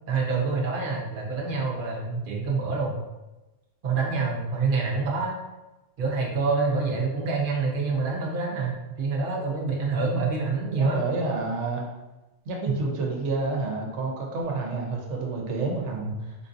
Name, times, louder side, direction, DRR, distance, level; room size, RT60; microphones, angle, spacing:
voice 1, 0.1-2.9 3.8-5.3 6.0-11.0 12.6-12.7 15.9-16.2, right 4 dB, 50° right, -3 dB, 0.8 m, -26 dB
voice 2, 10.8-11.9 12.5-16.3, right 3 dB, 75° right, 0 dB, 1.0 m, -29 dB
3.7 x 2.6 x 2.5 m, 1.1 s
omnidirectional pair, 1.2 m